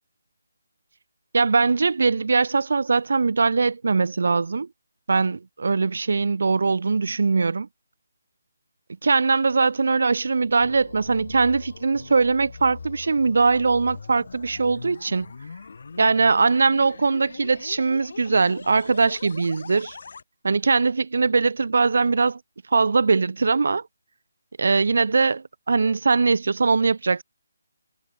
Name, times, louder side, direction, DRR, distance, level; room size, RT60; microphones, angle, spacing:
voice 1, 1.3-4.7 5.1-7.7 9.0-15.3 16.0-20.0 20.4-22.4 22.7-23.8 24.6-27.2, right 4 dB, 60° right, 0.8 m, -21 dB
sound 1, 10.2-20.2, left 5 dB, 55° left, 5.9 m, -41 dB
figure-of-eight pair, 145°, 0 cm